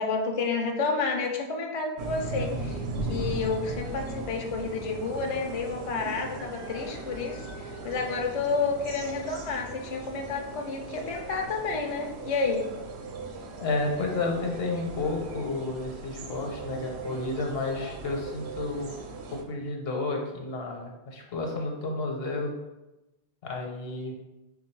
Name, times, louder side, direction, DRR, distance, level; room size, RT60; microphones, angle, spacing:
voice 1, 0.0-2.8 3.1-12.7, left 4 dB, 50° left, 2 dB, 0.4 m, -30 dB
sound 1, 2.0-19.4, right 2 dB, 75° right, 0.8 m, -38 dB
voice 2, 13.6-18.9 19.3-22.5 23.4-24.1, left 2 dB, 70° left, 1 dB, 0.9 m, -31 dB
3.4 x 2.3 x 4.4 m, 1.0 s
omnidirectional pair, 1.1 m